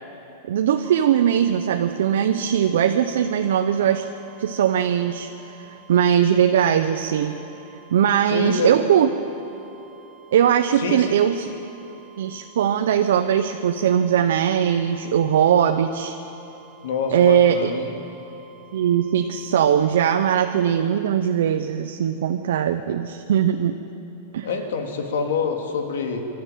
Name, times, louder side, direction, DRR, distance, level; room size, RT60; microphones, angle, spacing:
voice 1, 0.5-4.1 4.4-7.4 7.9-9.1 10.3-11.5 12.2-16.2 17.1-17.7 18.7-23.8 24.3-24.5, right 9 dB, 80° right, 6 dB, 0.8 m, -20 dB
sound 1, 0.8-20.4, right 12 dB, 15° left, 4.0 m, -51 dB
voice 2, 8.2-8.7 10.8-11.1 16.8-17.9 24.4-26.3, left 5 dB, 90° left, 4 dB, 2.8 m, -26 dB
25.0 x 12.5 x 9.2 m, 3.0 s
supercardioid pair, 170°, 0 cm